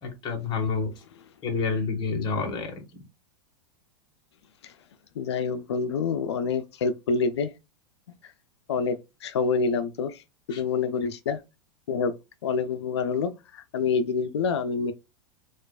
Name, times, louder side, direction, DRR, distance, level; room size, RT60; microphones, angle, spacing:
voice 1, 0.0-0.9 1.4-2.8 10.5-10.6, left 4 dB, 35° left, 1.3 m, -28 dB
voice 2, 5.2-7.5 8.2-8.3 8.7-10.2 10.5-11.4 11.9-12.1 12.4-14.9, left 5 dB, 90° left, 0.4 m, -27 dB
4.4 x 2.4 x 2.3 m
hypercardioid pair, 125°, 14 cm